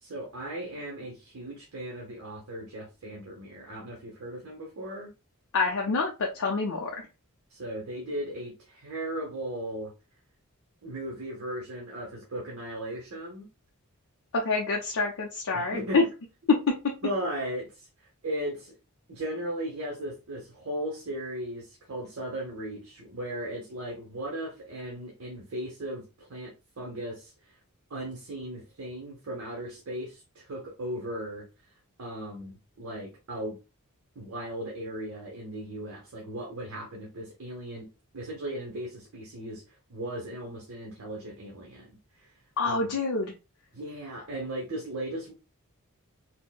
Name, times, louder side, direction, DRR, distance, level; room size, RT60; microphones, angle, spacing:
voice 1, 0.0-5.1 7.5-9.9 10.8-13.5 15.5-16.0 17.0-17.9 18.2-18.8 19.1-27.5 27.9-31.5 32.0-33.6 34.1-37.9 38.1-42.3 42.6-42.9 43.7-45.3, right 1 dB, 70° right, -2 dB, 0.8 m, -37 dB
voice 2, 5.5-7.1 14.3-16.0 42.6-43.3, left 3 dB, 65° left, 0 dB, 0.5 m, -27 dB
4.3 x 2.1 x 2.2 m, 0.28 s
head